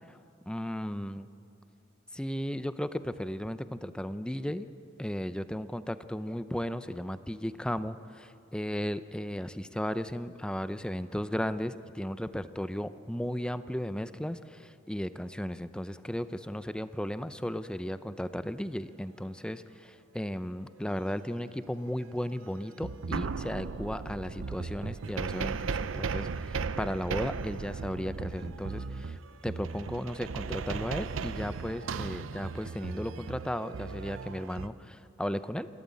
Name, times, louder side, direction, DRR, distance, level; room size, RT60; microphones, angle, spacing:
voice 1, 0.5-1.3 2.1-4.7 5.0-29.2 29.4-35.7, equal, 5° left, 13 dB, 0.6 m, -35 dB
sound 1, 22.3-22.4 22.8-34.7, right 5 dB, 80° right, 0.6 m, -36 dB
28.5 x 13.0 x 8.4 m, 2.6 s
head